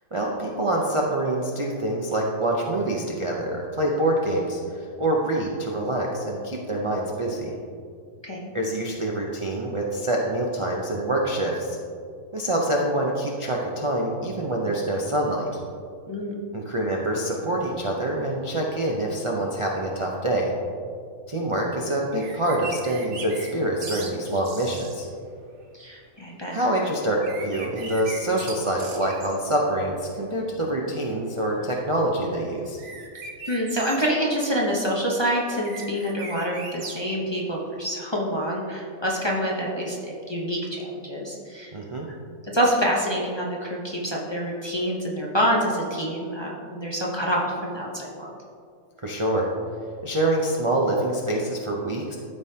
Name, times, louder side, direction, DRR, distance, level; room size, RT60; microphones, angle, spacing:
voice 1, 0.1-7.5 8.5-11.8 12.3-15.5 16.5-20.5 21.3-25.1 26.5-32.8 41.7-42.1 49.0-49.5 50.0-52.2, right 1 dB, 35° right, -2 dB, 0.5 m, -26 dB
sound 1, 22.1-23.5 23.8-25.0 27.2-29.6 32.8-34.1 35.5-37.0, right 4 dB, 55° right, 1.2 m, -38 dB
voice 2, 25.7-26.5 33.1-41.7 42.4-48.3, equal, 25° left, -4 dB, 0.7 m, -27 dB
13.0 x 5.5 x 2.8 m, 2.2 s
omnidirectional pair, 1.5 m